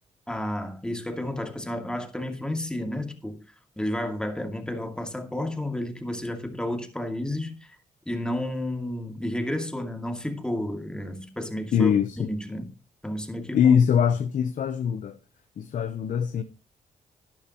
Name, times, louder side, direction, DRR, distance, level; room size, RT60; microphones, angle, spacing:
voice 1, 0.3-3.4 3.8-7.8 8.1-12.7 13.0-13.8, left 1 dB, 5° left, 2.4 m, -31 dB
voice 2, 11.7-12.3 13.5-15.2 15.6-16.4, left 7 dB, 65° left, 0.9 m, -22 dB
12.0 x 11.0 x 3.0 m
cardioid pair, 80°, 14 cm